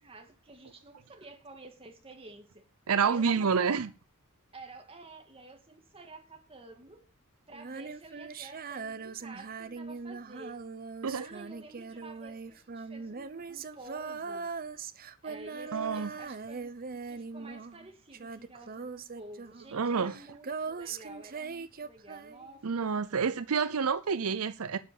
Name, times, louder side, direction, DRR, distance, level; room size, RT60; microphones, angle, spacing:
voice 1, 0.0-2.7 3.0-3.9 4.5-7.0 7.5-10.7 11.2-14.5 15.2-22.7 23.0-23.3, right 2 dB, 25° right, 2.2 m, -50 dB
voice 2, 2.9-3.9 11.0-11.3 15.7-16.1 19.7-20.1 22.6-24.8, right 5 dB, 75° right, 0.6 m, -28 dB
Female singing, 7.5-17.9 18.1-22.6, right 4 dB, 40° right, 0.8 m, -41 dB
12.0 x 6.9 x 7.3 m
head